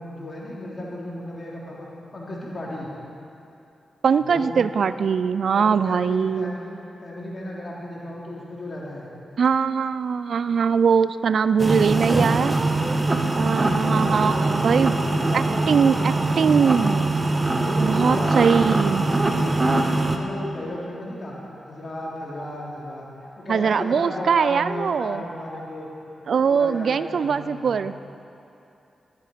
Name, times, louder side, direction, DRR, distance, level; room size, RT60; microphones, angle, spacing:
voice 1, 0.0-1.9 2.1-2.9 4.2-4.6 5.5-6.8 7.0-9.1 11.6-12.8 13.5-14.5 14.9-16.3 17.5-18.5 19.1-21.4 21.6-23.1 23.4-25.9 26.3-27.8, left 1 dB, 45° left, -5 dB, 3.6 m, -34 dB
voice 2, 4.0-6.5 9.4-12.5 13.4-15.0 15.3-17.1 17.8-19.1 23.5-25.2 26.3-27.9, right 6 dB, 70° right, 14 dB, 0.3 m, -21 dB
sound 1, 11.6-20.2, right 2 dB, 35° right, 1.2 m, -22 dB
12.0 x 10.5 x 5.8 m, 2.8 s
supercardioid pair, 40°, 0 cm